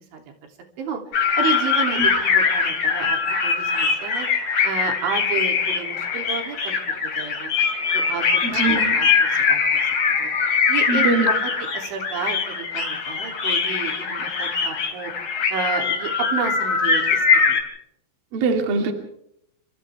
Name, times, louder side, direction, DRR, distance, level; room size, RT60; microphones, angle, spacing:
voice 1, 0.1-0.5 0.8-1.0 1.3-4.3 4.6-7.5 7.9-9.8 10.1-10.3 10.7-15.1 15.5-17.6, right 6 dB, 70° right, 3 dB, 5.4 m, -31 dB
sound 1, 1.1-17.6, left 5 dB, 40° left, 4.2 m, -22 dB
voice 2, 8.4-8.9 10.9-11.3 18.3-18.9, right 3 dB, 55° right, 3 dB, 4.2 m, -22 dB
28.5 x 28.0 x 3.5 m, 0.78 s
omnidirectional pair, 5.6 m